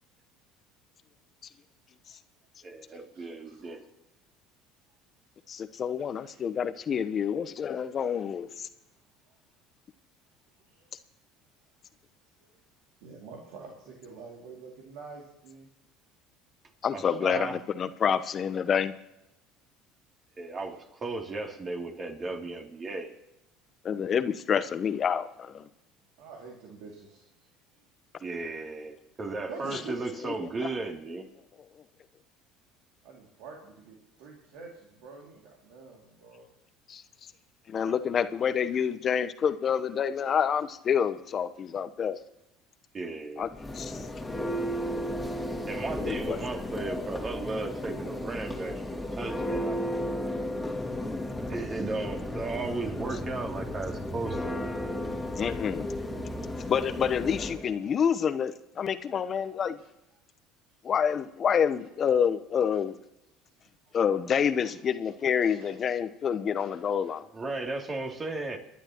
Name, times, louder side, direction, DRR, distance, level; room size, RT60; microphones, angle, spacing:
voice 1, 2.6-3.8 16.9-17.6 20.4-23.1 28.2-31.3 42.9-43.5 45.7-50.1 51.5-54.7 67.3-68.6, right 3 dB, 35° right, 2 dB, 2.9 m, -35 dB
voice 2, 3.1-3.8 6.2-6.3 9.3-9.4 10.7-10.9 12.4-12.5 13.0-15.7 20.6-20.7 26.2-27.3 29.5-30.0 33.0-36.5 49.8-49.9 57.8-57.9 59.3-59.4 59.8-59.9 63.6-64.0 64.6-64.7 65.4-65.9 66.7-67.1, right 4 dB, 75° right, -2 dB, 2.5 m, -47 dB
voice 3, 5.5-8.7 16.8-18.9 23.8-25.7 30.2-30.3 36.9-37.0 37.7-42.2 43.4-43.5 43.7-44.1 46.0-46.4 55.4-55.9 56.7-59.8 60.8-62.9 63.9-67.3, left 7 dB, 40° left, 12 dB, 0.9 m, -28 dB
Church bell, 43.4-57.7, left 1 dB, 10° left, 2.3 m, -34 dB
26.0 x 11.5 x 3.0 m, 0.89 s
hypercardioid pair, 80°, 0 cm